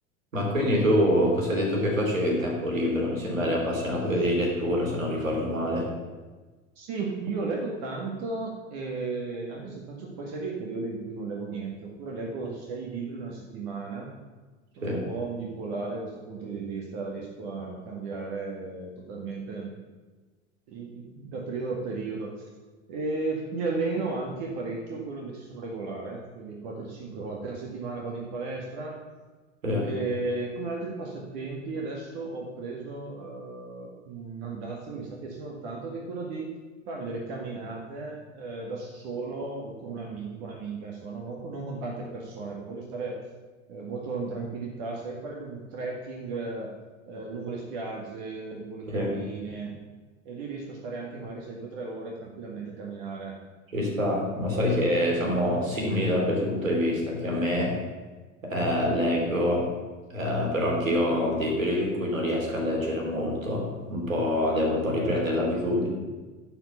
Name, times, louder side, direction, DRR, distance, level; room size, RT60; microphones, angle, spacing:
voice 1, 0.3-5.9 14.8-15.0 29.6-29.9 48.9-49.1 53.7-57.7 58.4-59.7 60.1-65.9, equal, 80° right, -1 dB, 3.1 m, -26 dB
voice 2, 6.8-14.1 14.8-19.7 20.7-22.4 22.9-29.0 29.8-36.5 36.9-43.2 43.7-46.7 47.1-49.7 50.3-53.4, right 3 dB, 55° right, -1 dB, 1.9 m, -35 dB
11.5 x 4.9 x 7.1 m, 1.3 s
figure-of-eight pair, 80°, 39 cm